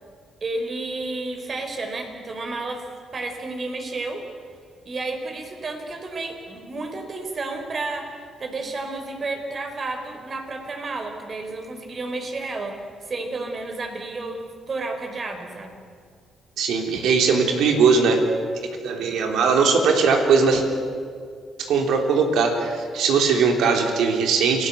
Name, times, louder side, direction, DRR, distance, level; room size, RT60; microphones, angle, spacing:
voice 1, 0.4-2.8 3.1-4.2 4.8-8.1 8.4-12.8 13.1-15.8, right 3 dB, 40° right, 5 dB, 4.7 m, -31 dB
voice 2, 16.6-18.2 18.8-20.6 21.6-24.7, right 5 dB, 80° right, 3 dB, 3.8 m, -20 dB
28.5 x 18.5 x 8.2 m, 2.1 s
cardioid pair, 90°, 0 cm